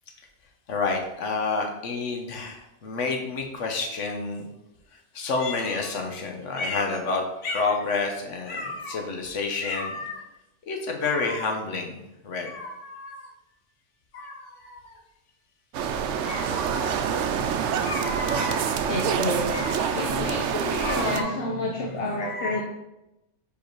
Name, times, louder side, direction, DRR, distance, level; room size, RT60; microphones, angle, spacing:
voice 1, 0.7-4.5 5.1-10.2 10.7-13.3 14.1-15.0 16.2-17.2 17.8-18.7 19.5-20.3 20.8-21.4 22.2-22.6, left 3 dB, 80° left, 3 dB, 1.3 m, -30 dB
sound 1, 15.7-21.2, right 7 dB, 80° right, 0.9 m, -26 dB
voice 2, 18.9-22.6, left 2 dB, 55° left, -1 dB, 0.9 m, -29 dB
5.1 x 4.8 x 4.5 m, 0.92 s
omnidirectional pair, 1.2 m